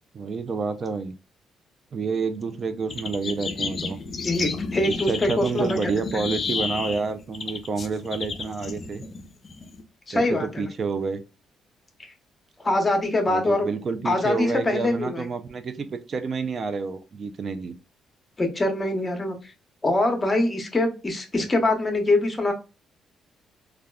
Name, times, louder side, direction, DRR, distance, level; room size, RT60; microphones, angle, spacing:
voice 1, 0.1-1.1 1.9-4.0 4.9-9.0 10.1-11.2 13.3-17.8, right 4 dB, 45° right, 9 dB, 0.4 m, -29 dB
sound 1, 2.9-9.8, left 4 dB, 45° left, 0.5 m, -32 dB
voice 2, 4.2-5.8 6.1-6.2 10.1-10.6 12.6-13.7 14.0-15.3 18.4-19.4 19.8-22.5, left 2 dB, 25° left, 4 dB, 0.8 m, -23 dB
3.4 x 2.3 x 2.2 m, 0.30 s
cardioid pair, 90°, 0 cm